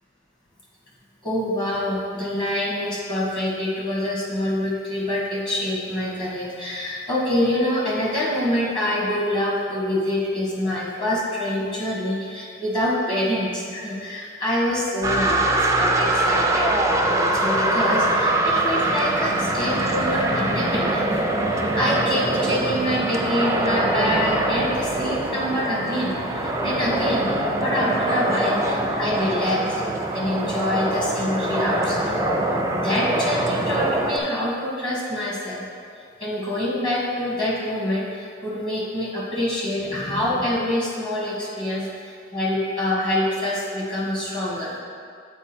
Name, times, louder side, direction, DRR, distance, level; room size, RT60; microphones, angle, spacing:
voice 1, 1.2-16.7 17.0-21.1 21.5-27.3 27.6-29.8 30.1-32.2 32.7-35.6 36.2-44.7, left 1 dB, 25° left, -5 dB, 1.6 m, -26 dB
sound 1, 15.0-34.2, right 1 dB, 15° right, 0.5 m, -23 dB
7.1 x 4.7 x 4.4 m, 2.2 s
head